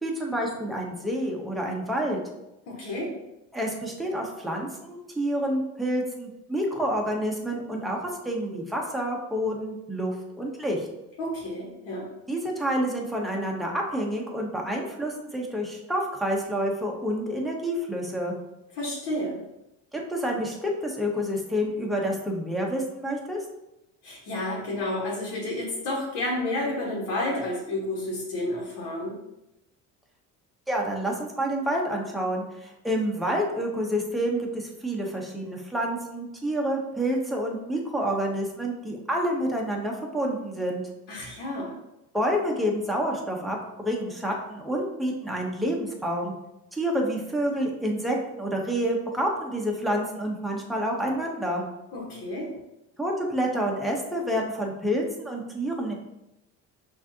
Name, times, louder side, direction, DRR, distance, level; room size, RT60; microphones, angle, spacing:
voice 1, 0.0-2.2 3.5-10.9 12.3-18.4 19.9-23.4 30.7-40.8 42.1-46.3 46.7-51.6 53.0-55.9, equal, ahead, -1 dB, 0.7 m, -28 dB
voice 2, 2.7-3.1 11.2-12.1 18.8-19.4 24.0-29.2 41.1-41.7 51.9-52.5, left 1 dB, 75° left, -5 dB, 1.3 m, -30 dB
6.0 x 2.6 x 2.7 m, 0.91 s
cardioid pair, 110°, 33 cm